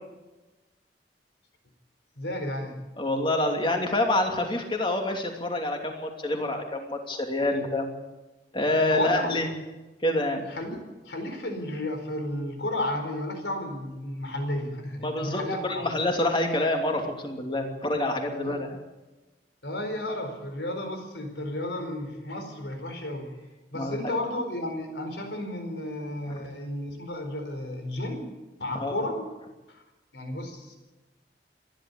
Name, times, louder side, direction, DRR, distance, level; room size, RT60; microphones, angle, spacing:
voice 1, 2.2-2.8 8.9-9.4 10.5-15.9 18.4-18.6 19.6-23.4 23.7-28.3 28.6-29.3 29.7-29.8 30.1-30.7, left 1 dB, 90° left, 5 dB, 4.5 m, -33 dB
voice 2, 3.0-7.9 8.5-9.5 10.0-10.5 15.0-18.8 23.7-24.0 26.3-26.4 28.7-28.9, left 1 dB, 30° left, 3 dB, 2.8 m, -27 dB
27.0 x 11.5 x 8.5 m, 1.1 s
head